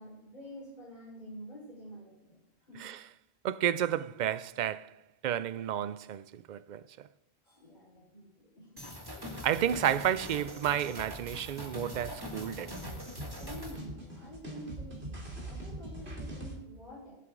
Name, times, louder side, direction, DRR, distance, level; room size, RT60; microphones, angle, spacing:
voice 1, 0.0-2.4 2.7-2.8 7.4-8.8 13.4-17.1, equal, 45° left, 5.1 m, -48 dB
voice 2, 3.4-4.9 5.2-6.8 9.4-12.8, right 10 dB, 55° right, 0.5 m, -31 dB
sound 1, 8.8-13.8, left 1 dB, 20° right, 2.2 m, -43 dB
sound 2, 11.0-16.5, right 1 dB, 85° right, 3.1 m, -43 dB
22.0 x 7.9 x 3.8 m
omnidirectional pair, 1.1 m